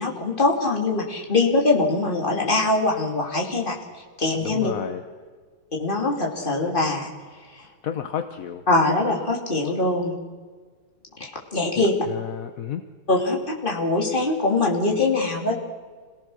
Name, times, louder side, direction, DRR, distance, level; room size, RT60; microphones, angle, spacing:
voice 1, 0.0-3.8 4.2-4.7 5.8-7.1 7.6-7.7 8.7-10.1 11.2-11.9 13.1-15.6, left 2 dB, 25° left, -1 dB, 3.1 m, -22 dB
voice 2, 4.4-5.0 7.8-8.7 11.8-12.8, left 9 dB, 55° left, 8 dB, 1.1 m, -32 dB
27.0 x 17.5 x 6.4 m, 1.5 s
omnidirectional pair, 2.3 m